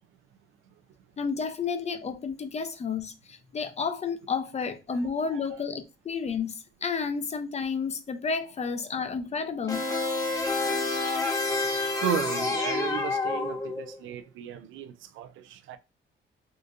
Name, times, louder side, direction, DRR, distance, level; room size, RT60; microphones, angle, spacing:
voice 1, 1.2-9.8, left 5 dB, 35° left, 0.5 m, -31 dB
voice 2, 5.1-5.6 10.2-10.9 11.6-15.8, right 10 dB, 75° right, 0.4 m, -36 dB
sound 1, 9.7-14.0, left 3 dB, 15° left, 0.9 m, -28 dB
3.7 x 2.5 x 2.5 m
cardioid pair, 90°, 20 cm